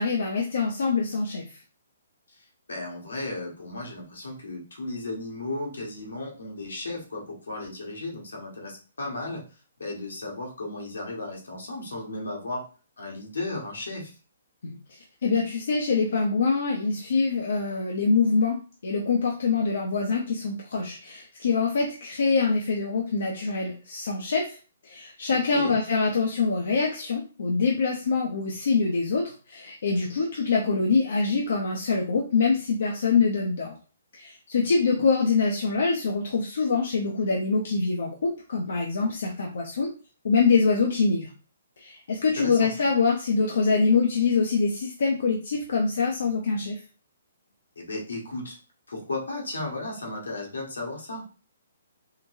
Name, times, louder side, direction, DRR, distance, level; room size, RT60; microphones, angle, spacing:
voice 1, 0.0-1.6 14.6-24.6 24.8-33.7 34.1-39.9 40.2-41.3 41.8-46.8, left 4 dB, 70° left, -1 dB, 0.6 m, -25 dB
voice 2, 2.3-9.4 9.8-12.7 13.0-14.2 25.3-25.8 34.9-35.1 42.4-42.9 47.8-48.6 48.9-51.2, left 2 dB, 85° left, 0 dB, 1.2 m, -35 dB
3.8 x 2.2 x 2.6 m, 0.36 s
hypercardioid pair, 140°, 0 cm